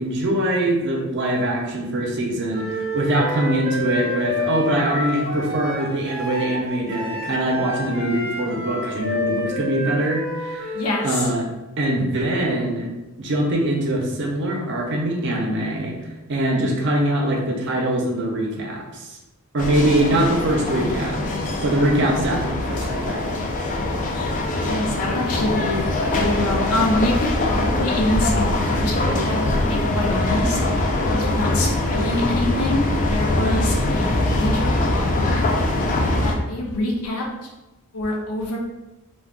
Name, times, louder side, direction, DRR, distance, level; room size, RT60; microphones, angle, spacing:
voice 1, 0.0-10.8 11.0-11.4 11.8-12.9 13.2-15.9 16.3-19.1 19.5-21.2 21.6-23.2, right 1 dB, 55° right, 0 dB, 0.6 m, -23 dB
Wind instrument woodwind instrument, 2.5-11.0, left 1 dB, 25° right, 1.0 m, -29 dB
voice 2, 10.7-11.3 20.1-20.2 24.1-24.3 24.6-28.4 28.7-30.6 31.1-35.4 36.2-37.5 37.9-38.6, left 1 dB, 75° left, -1 dB, 0.6 m, -26 dB
sound 1, 19.6-36.3, left 2 dB, 35° left, 0.3 m, -22 dB
2.3 x 2.3 x 3.5 m, 1.0 s
head